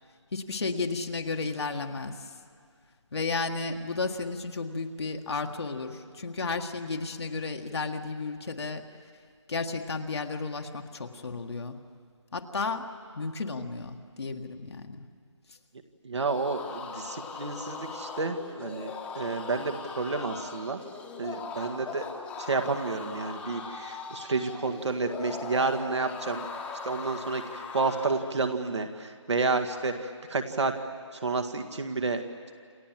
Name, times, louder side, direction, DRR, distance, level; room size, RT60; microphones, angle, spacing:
voice 1, 0.3-2.3 3.1-8.8 9.5-11.8 12.3-12.9 13.1-15.1, left 4 dB, 55° left, 3 dB, 1.8 m, -33 dB
voice 2, 16.0-20.8 21.2-22.0 22.4-26.5 26.8-30.7 31.2-32.2, right 3 dB, 65° right, 5 dB, 2.0 m, -30 dB
sound 1, 16.2-28.3, left 4 dB, 5° left, 1.4 m, -40 dB
28.5 x 27.0 x 7.6 m, 2.1 s
figure-of-eight pair, 160°, 16 cm